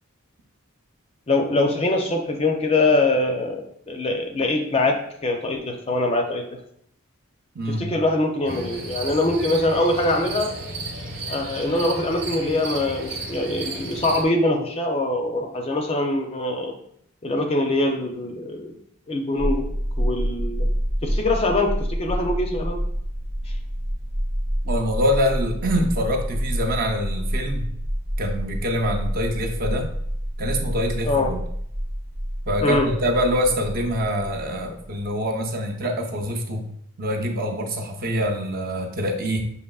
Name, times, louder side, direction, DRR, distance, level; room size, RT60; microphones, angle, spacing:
voice 1, 1.3-6.5 7.7-10.5 11.3-16.7 17.2-18.8 19.1-19.7 20.0-20.7 21.0-22.8 31.0-31.3 32.6-32.9, left 2 dB, 25° left, 3 dB, 0.4 m, -23 dB
voice 2, 7.5-7.9 24.6-27.7 28.2-29.9 30.4-31.4 32.5-36.7 37.0-39.4, equal, 40° right, 2 dB, 0.5 m, -25 dB
sound 1, 8.4-14.2, right 2 dB, 60° right, 0.9 m, -33 dB
sound 2, 19.4-35.1, equal, 80° right, 0.7 m, -28 dB
6.6 x 2.8 x 2.3 m, 0.69 s
head